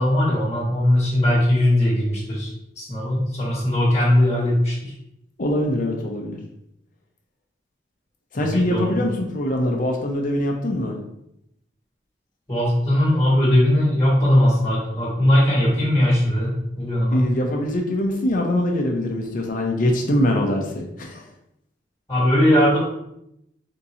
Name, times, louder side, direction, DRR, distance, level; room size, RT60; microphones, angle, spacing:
voice 1, 0.0-2.5 2.8-4.9 8.4-8.9 12.5-17.3 22.1-22.8, left 1 dB, 20° left, -6 dB, 1.3 m, -19 dB
voice 2, 5.4-6.4 8.3-11.0 17.1-21.2, left 1 dB, 50° left, 1 dB, 0.6 m, -23 dB
3.6 x 2.8 x 4.1 m, 0.80 s
head